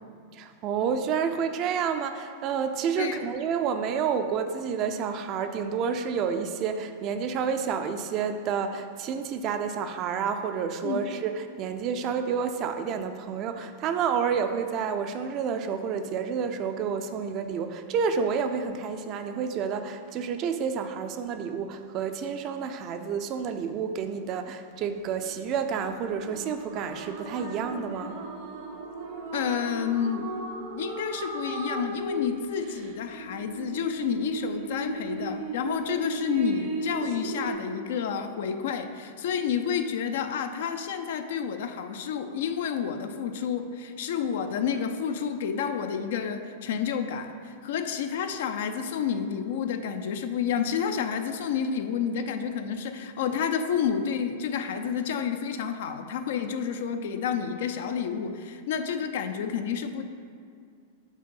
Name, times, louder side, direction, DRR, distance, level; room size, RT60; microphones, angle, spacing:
voice 1, 0.4-28.2, right 6 dB, 40° right, 8 dB, 0.4 m, -29 dB
sound 1, 24.8-37.5, right 2 dB, 60° right, 0.8 m, -36 dB
voice 2, 29.3-30.3 30.7-60.0, left 7 dB, 70° left, 8 dB, 0.4 m, -30 dB
5.1 x 3.6 x 5.4 m, 2.3 s
hypercardioid pair, 115°, 0 cm